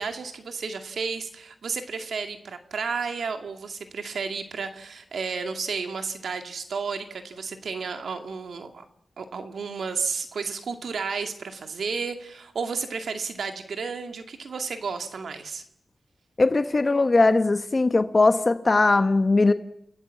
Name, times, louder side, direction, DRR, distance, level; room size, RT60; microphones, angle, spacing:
voice 1, 0.0-8.9 9.2-15.6, right 5 dB, 85° right, 6 dB, 2.1 m, -32 dB
voice 2, 16.4-19.5, left 3 dB, 35° left, 10 dB, 1.1 m, -20 dB
29.5 x 16.0 x 7.5 m, 0.77 s
wide cardioid pair, 80°, 0 cm